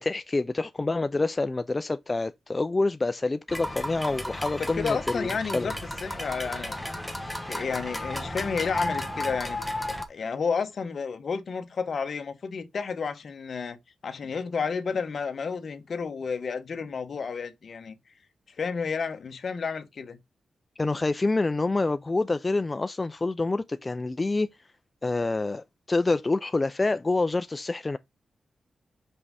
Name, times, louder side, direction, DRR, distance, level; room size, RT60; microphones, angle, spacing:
voice 1, 0.0-5.7 20.8-24.5 25.0-28.0, left 3 dB, 25° left, 0.3 m, -27 dB
sound 1, 3.5-10.1, left 1 dB, 5° left, 1.1 m, -33 dB
voice 2, 4.6-5.7 6.0-6.9 7.5-9.6 10.1-13.8 14.0-18.0 18.6-20.2, left 5 dB, 55° left, 1.1 m, -31 dB
6.0 x 5.5 x 4.1 m
wide cardioid pair, 125°, 0 cm